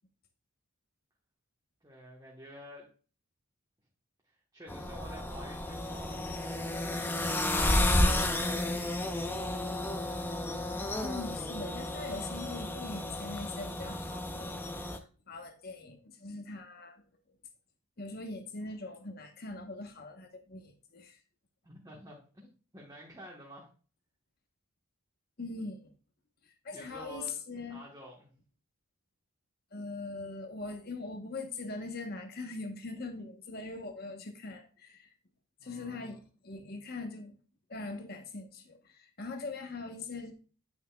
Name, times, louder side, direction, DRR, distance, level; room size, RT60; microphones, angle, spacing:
voice 1, 1.8-2.9 4.2-9.5 21.6-22.5 22.7-23.7 26.7-27.4 27.7-28.3 35.6-36.2, equal, 15° right, -3 dB, 1.2 m, -50 dB
sound 1, 4.7-15.0, left 1 dB, 10° left, 0.4 m, -32 dB
voice 2, 11.0-17.0 18.0-21.2 25.4-25.9 26.6-27.8 29.7-35.1 35.6-37.4 37.7-40.3, left 3 dB, 45° left, 5 dB, 1.0 m, -41 dB
9.1 x 5.8 x 2.3 m, 0.39 s
head